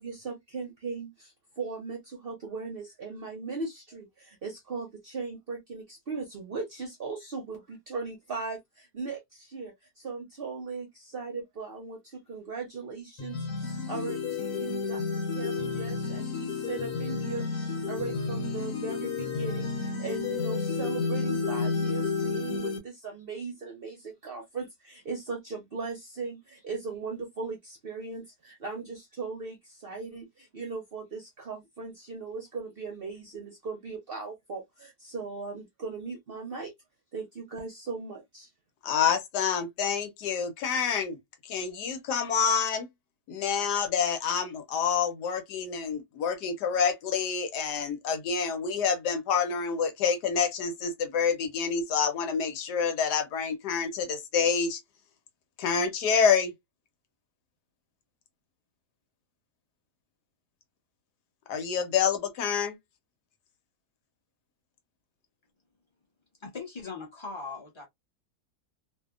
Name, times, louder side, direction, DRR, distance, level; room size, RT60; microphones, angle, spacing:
voice 1, 0.0-15.0 15.3-36.7 37.1-38.5, right 4 dB, 55° right, 0.6 m, -38 dB
sound 1, 13.2-22.8, left 4 dB, 75° left, 1.3 m, -31 dB
voice 2, 38.8-41.2 41.4-42.9 43.3-54.8 55.6-56.5 61.5-62.8, left 6 dB, 90° left, 1.3 m, -27 dB
voice 3, 66.4-67.9, left 4 dB, 25° left, 0.7 m, -39 dB
2.7 x 2.4 x 2.3 m
omnidirectional pair, 1.7 m